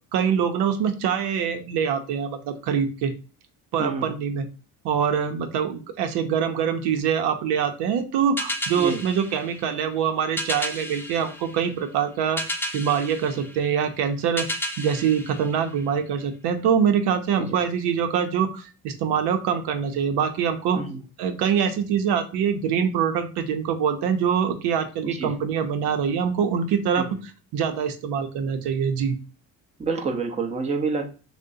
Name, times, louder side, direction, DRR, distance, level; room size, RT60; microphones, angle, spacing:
voice 1, 0.1-3.1 3.7-4.5 4.8-12.4 12.7-14.5 14.8-20.8 21.2-27.1 27.5-29.2, right 7 dB, 80° right, 7 dB, 0.7 m, -24 dB
voice 2, 3.8-4.1 8.7-9.0 17.4-17.6 20.7-21.0 25.0-25.3 26.9-27.1 29.8-31.1, right 4 dB, 15° right, 3 dB, 0.8 m, -28 dB
sound 1, 8.4-16.2, left 1 dB, 5° left, 0.4 m, -34 dB
6.3 x 2.1 x 2.6 m, 0.35 s
cardioid pair, 110°, 40 cm